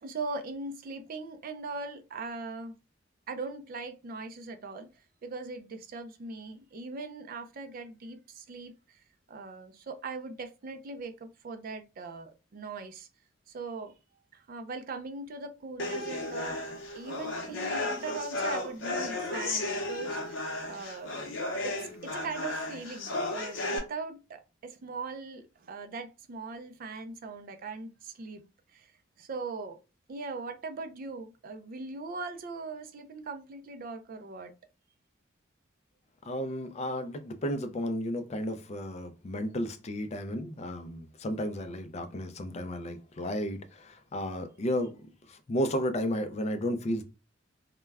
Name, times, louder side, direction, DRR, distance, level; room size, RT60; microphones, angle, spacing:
voice 1, 0.0-2.7 3.3-4.9 5.2-9.0 9.3-13.1 13.5-13.9 14.3-16.6 16.9-21.2 21.6-28.4 28.7-28.9 29.2-29.8 30.1-34.5, right 3 dB, 45° right, 0.4 m, -40 dB
sound 1, 15.8-23.8, left 2 dB, 70° left, 0.7 m, -34 dB
voice 2, 36.3-44.9 45.3-47.0, equal, 35° left, 0.4 m, -33 dB
2.2 x 2.1 x 3.3 m
head